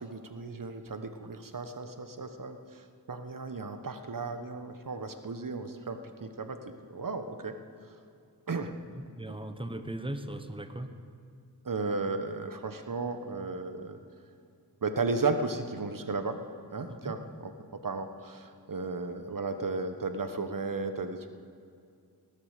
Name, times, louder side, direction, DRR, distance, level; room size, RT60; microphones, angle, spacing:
voice 1, 0.0-7.6 8.5-8.8 11.6-14.0 14.8-16.4 16.7-17.5 17.8-21.3, right 3 dB, 55° right, 8 dB, 1.1 m, -34 dB
voice 2, 8.9-10.9 16.9-17.1, right 1 dB, 15° right, 9 dB, 1.1 m, -38 dB
18.5 x 10.5 x 6.7 m, 2.4 s
wide cardioid pair, 55°, 39 cm